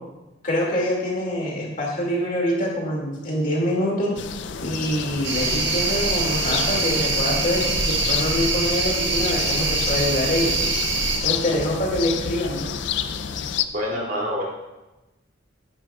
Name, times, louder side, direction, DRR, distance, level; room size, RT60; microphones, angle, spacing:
voice 1, 0.4-4.1 4.6-10.6 11.2-12.7, equal, 45° left, -2 dB, 2.2 m, -25 dB
sound 1, 4.2-13.6, left 7 dB, 70° left, 0.4 m, -30 dB
sound 2, 5.2-11.2, right 3 dB, 65° right, 1.4 m, -24 dB
voice 2, 13.7-14.4, left 1 dB, 45° right, -4 dB, 2.6 m, -26 dB
10.5 x 10.0 x 2.3 m, 1.0 s
head